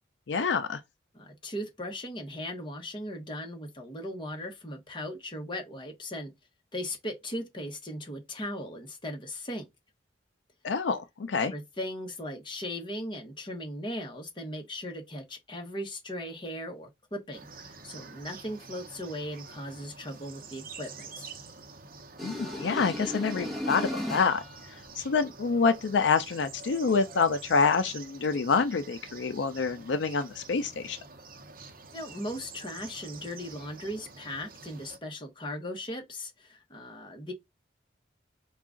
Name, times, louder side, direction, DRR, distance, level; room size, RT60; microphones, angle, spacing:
voice 1, 0.3-0.8 10.6-11.5 22.2-24.4 25.0-31.0, left 5 dB, 75° left, 0.4 m, -27 dB
voice 2, 1.1-6.3 6.7-9.7 11.5-21.3 31.9-37.3, left 1 dB, 25° left, 1.0 m, -38 dB
sound 1, 17.3-35.0, right 4 dB, 50° right, 0.8 m, -48 dB
sound 2, 22.2-24.6, left 1 dB, ahead, 0.9 m, -35 dB
4.7 x 2.4 x 3.7 m
head